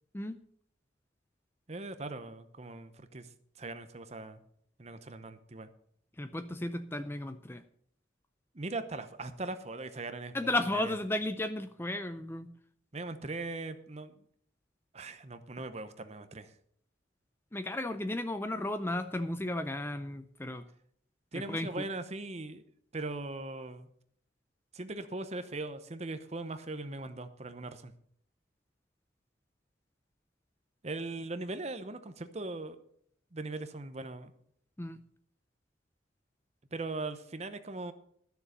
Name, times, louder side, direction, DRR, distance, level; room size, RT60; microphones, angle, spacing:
voice 1, 1.7-3.3 3.6-4.4 4.8-5.7 8.5-10.9 12.9-14.2 14.9-16.5 21.3-22.6 22.9-23.9 24.7-27.9 30.8-32.8 33.3-34.3 36.7-37.9, right 2 dB, 35° right, 10 dB, 0.8 m, -40 dB
voice 2, 6.2-7.6 10.3-12.5 17.5-20.6 21.3-21.8 34.8-35.0, left 1 dB, 10° left, 10 dB, 0.5 m, -34 dB
12.5 x 7.0 x 6.6 m, 0.66 s
head